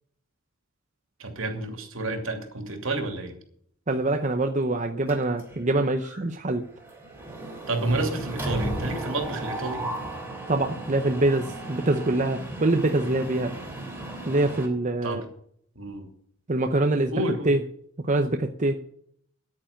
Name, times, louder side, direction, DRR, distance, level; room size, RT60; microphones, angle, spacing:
voice 1, 1.2-3.3 7.7-9.9 15.0-15.2 15.8-16.1 17.1-17.5, right 2 dB, 70° right, 5 dB, 2.8 m, -29 dB
voice 2, 3.9-6.6 10.5-13.5 14.3-15.2 16.5-17.1 17.5-17.6 18.0-18.8, right 2 dB, 35° right, 5 dB, 0.7 m, -24 dB
Mechanisms, 5.1-5.7 6.0-6.2 6.5-14.7, right 1 dB, 10° right, 2.9 m, -35 dB
9.7 x 9.1 x 8.7 m, 0.65 s
head